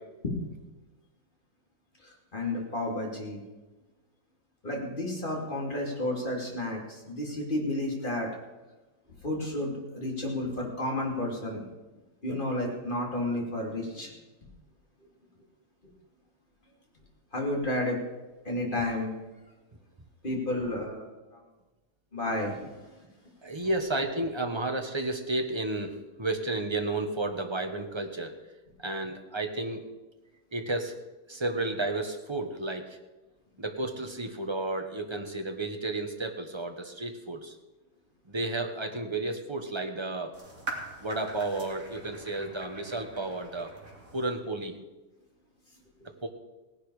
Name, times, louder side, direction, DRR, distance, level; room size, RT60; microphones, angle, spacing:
voice 1, 2.0-3.4 4.6-8.3 9.2-11.6 12.2-14.1 17.3-18.0 18.4-19.1 20.2-21.4 22.1-23.0, left 1 dB, 30° left, -1 dB, 3.3 m, -31 dB
voice 2, 23.4-28.4 28.8-29.8 30.5-31.0 31.3-33.0 33.6-37.6 38.3-40.3 41.0-43.7 44.1-44.8 46.0-46.3, right 2 dB, 20° right, 4 dB, 1.2 m, -32 dB
sound 1, 40.3-44.3, right 2 dB, 45° right, 3.1 m, -43 dB
17.5 x 11.0 x 5.0 m, 1.2 s
omnidirectional pair, 1.8 m